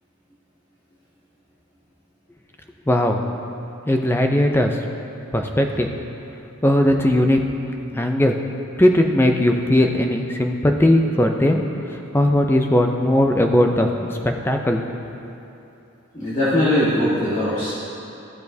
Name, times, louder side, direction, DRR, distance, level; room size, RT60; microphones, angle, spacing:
voice 1, 2.9-3.2 3.9-4.8 5.3-5.9 6.6-7.4 7.9-8.3 8.8-14.8, left 1 dB, 10° left, 4 dB, 0.4 m, -18 dB
voice 2, 16.1-17.7, left 1 dB, 35° left, -12 dB, 1.5 m, -20 dB
14.0 x 6.9 x 2.7 m, 2.9 s
head